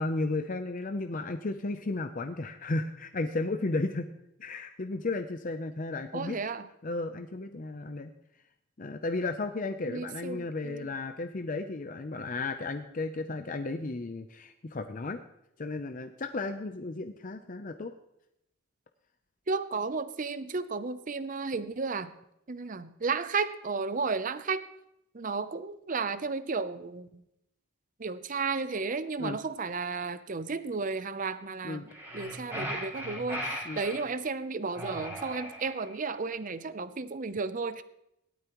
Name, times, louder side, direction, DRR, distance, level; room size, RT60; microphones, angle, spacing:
voice 1, 0.0-4.1 4.4-6.4 6.8-8.1 8.8-15.2 15.6-17.9 29.2-29.4 31.6-31.8 33.6-33.8, left 2 dB, 40° left, 7 dB, 0.6 m, -34 dB
voice 2, 6.1-6.7 9.9-10.9 19.5-22.1 22.5-24.6 25.1-27.2 28.0-37.8, right 4 dB, 40° right, 13 dB, 0.6 m, -33 dB
sound 1, 31.9-34.1 34.7-36.0, equal, 10° right, 2.7 m, -38 dB
18.0 x 12.5 x 3.0 m, 0.81 s
head